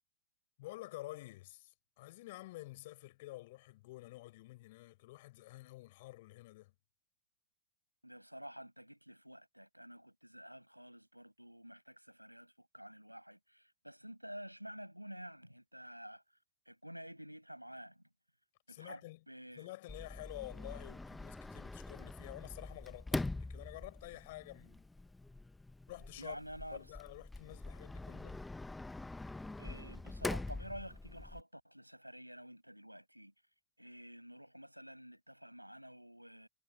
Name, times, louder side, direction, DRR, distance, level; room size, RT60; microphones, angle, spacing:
voice 1, 0.6-6.7 18.7-19.2 19.6-24.8 25.9-26.4 26.7-28.4, left 19 dB, 50° left, 6.3 m, -50 dB
voice 2, 8.0-16.2 16.6-18.0 18.7-19.7 26.2-26.8 29.6-33.3 33.8-36.5, equal, 90° right, 6.3 m, -50 dB
Sliding door, 19.9-31.4, left 2 dB, 5° left, 1.2 m, -44 dB
figure-of-eight pair, 90°, 0 cm